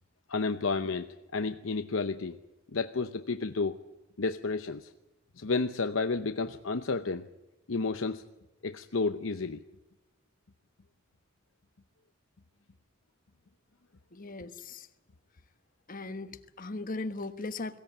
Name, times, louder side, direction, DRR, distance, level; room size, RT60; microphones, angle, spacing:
voice 1, 0.3-2.4 2.7-3.8 4.2-4.9 5.4-7.3 7.7-8.2 8.6-9.6, left 4 dB, 70° left, 8 dB, 0.8 m, -31 dB
voice 2, 14.1-14.9 15.9-17.8, left 3 dB, 40° left, 9 dB, 1.3 m, -38 dB
22.0 x 17.0 x 9.0 m, 1.0 s
head